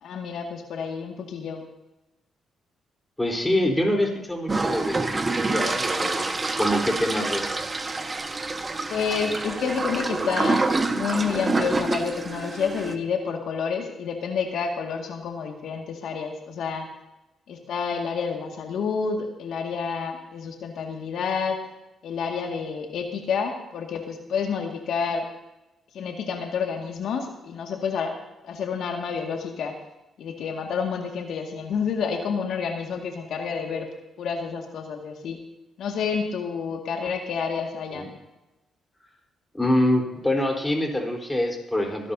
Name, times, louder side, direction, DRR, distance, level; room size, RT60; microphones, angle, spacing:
voice 1, 0.0-1.6 8.9-10.7 10.9-16.9 17.5-21.6 22.0-25.3 25.9-28.1 28.4-29.7 30.2-33.9 34.2-35.4 35.8-38.1, left 6 dB, 75° left, 3 dB, 2.0 m, -29 dB
voice 2, 3.2-6.3 6.6-7.6 37.9-38.1 39.5-42.1, left 1 dB, 10° left, 1 dB, 4.0 m, -25 dB
sound 1, 4.5-12.9, right 3 dB, 30° right, 1.4 m, -27 dB
25.0 x 11.0 x 2.8 m, 0.97 s
supercardioid pair, 70°, 0 cm